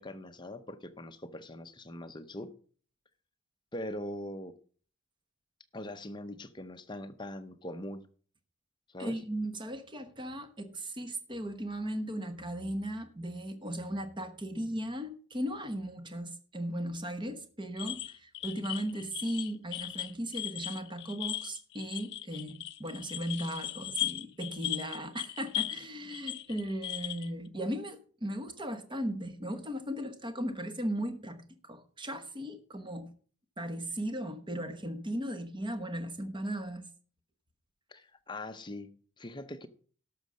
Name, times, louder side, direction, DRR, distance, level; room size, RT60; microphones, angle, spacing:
voice 1, 0.0-2.5 3.7-4.6 5.7-8.1 8.9-9.2 37.9-39.7, left 1 dB, 20° left, 0.7 m, -42 dB
voice 2, 9.0-33.1 33.6-36.8, equal, 20° right, 1.1 m, -37 dB
sound 1, 17.8-25.9 26.1-27.3, left 14 dB, 55° left, 0.5 m, -38 dB
12.5 x 6.3 x 6.3 m
head